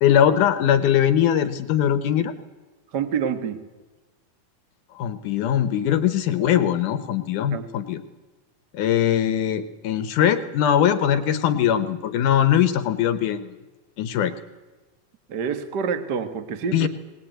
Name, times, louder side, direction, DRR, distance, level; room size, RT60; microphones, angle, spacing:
voice 1, 0.0-2.3 5.0-8.0 8.7-13.6 14.0-14.3 16.7-16.9, left 10 dB, 70° left, 11 dB, 2.2 m, -21 dB
voice 2, 2.9-3.6 7.5-7.7 15.3-16.9, right 6 dB, 70° right, 9 dB, 1.0 m, -27 dB
21.0 x 19.0 x 9.0 m, 1.2 s
omnidirectional pair, 4.3 m